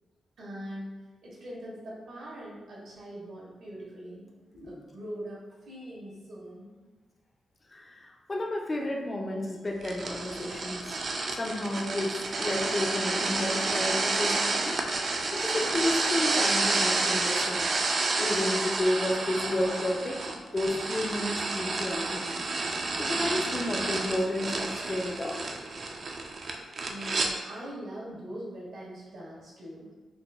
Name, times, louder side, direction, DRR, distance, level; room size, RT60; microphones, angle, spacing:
voice 1, 0.4-0.9 1.2-4.3 4.5-6.7 20.2-20.3 26.9-29.9, equal, 80° right, -6 dB, 1.4 m, -42 dB
voice 2, 7.7-11.0 11.3-17.7 18.2-20.2 20.5-22.3 22.7-25.4, left 1 dB, 30° left, 0 dB, 0.4 m, -31 dB
sound 1, 9.8-27.3, right 3 dB, 55° right, 0.4 m, -30 dB
4.0 x 2.1 x 3.3 m, 1.3 s
cardioid pair, 95°, 0 cm